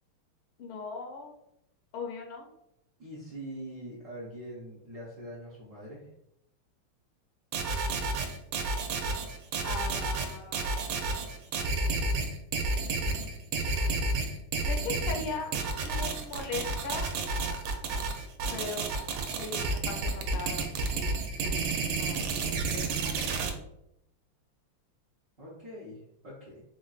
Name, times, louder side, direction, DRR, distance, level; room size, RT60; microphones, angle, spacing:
voice 1, 0.6-1.3 1.9-2.5 9.6-11.0 13.8-13.9 14.6-15.5 15.8-17.1 18.5-18.9 19.4-23.1, left 4 dB, 80° left, 1 dB, 1.6 m, -39 dB
voice 2, 3.0-6.1 25.4-26.6, equal, 55° right, -7 dB, 0.9 m, -43 dB
sound 1, 7.5-23.5, right 3 dB, 85° right, 1.5 m, -31 dB
4.5 x 2.5 x 2.3 m, 0.79 s
omnidirectional pair, 2.3 m